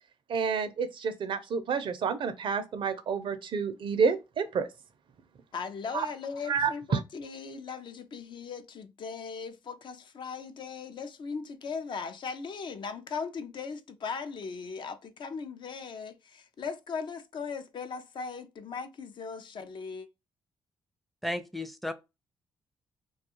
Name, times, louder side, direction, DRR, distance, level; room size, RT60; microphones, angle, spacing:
voice 1, 0.3-4.7 5.9-6.1 6.5-7.0, right 6 dB, 60° right, 0.5 m, -29 dB
voice 2, 5.5-20.1, left 5 dB, 55° left, 0.4 m, -38 dB
voice 3, 21.2-21.9, left 1 dB, ahead, 0.5 m, -33 dB
2.3 x 2.3 x 2.8 m
supercardioid pair, 60°, 9 cm